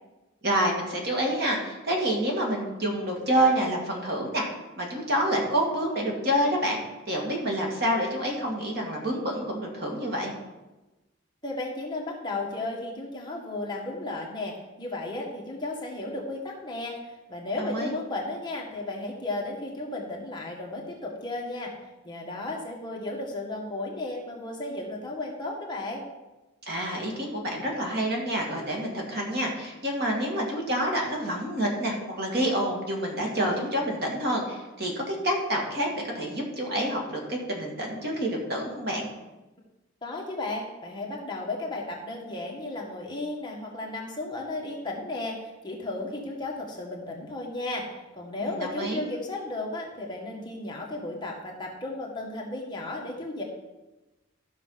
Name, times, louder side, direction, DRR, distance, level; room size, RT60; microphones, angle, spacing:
voice 1, 0.4-4.5 4.8-10.3 17.6-17.9 26.7-35.9 36.1-39.1 48.4-49.0, equal, 50° right, 0 dB, 2.4 m, -28 dB
voice 2, 11.4-21.7 22.0-26.1 40.0-47.9 48.1-53.4, left 2 dB, 20° left, -2 dB, 1.6 m, -34 dB
13.0 x 6.2 x 5.8 m, 1.1 s
head